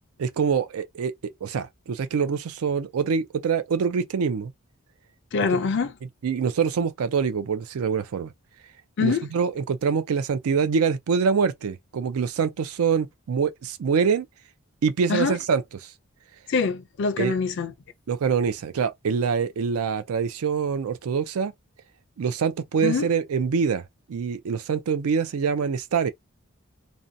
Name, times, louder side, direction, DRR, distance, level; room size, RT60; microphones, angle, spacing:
voice 1, 0.2-1.1 1.4-4.5 6.2-8.3 9.0-14.3 14.8-15.9 17.2-17.3 18.1-21.5 22.2-23.8 24.1-26.1, right 6 dB, 80° right, 0.4 m, -25 dB
voice 2, 5.3-5.9 9.0-9.2 15.1-15.4 16.5-17.7 22.8-23.1, left 5 dB, 55° left, 0.4 m, -24 dB
2.6 x 2.1 x 2.6 m
head